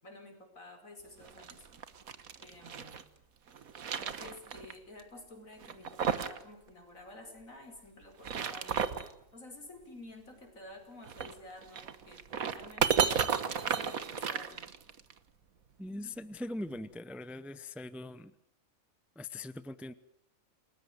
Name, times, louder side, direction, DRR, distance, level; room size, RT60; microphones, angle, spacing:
voice 1, 0.0-1.7 2.4-3.0 4.0-9.0 9.3-12.2 12.5-14.7, left 2 dB, 75° left, 4 dB, 5.7 m, -51 dB
sound 1, 1.2-3.0 3.5-4.7 5.0-5.1 5.6-6.4 6.7-6.8 8.0-9.1 11.0-15.1, right 7 dB, 85° right, 1.7 m, -33 dB
voice 2, 15.8-18.3 19.2-19.9, left 1 dB, ahead, 14 dB, 0.7 m, -41 dB
29.0 x 20.0 x 7.9 m, 0.73 s
omnidirectional pair, 1.4 m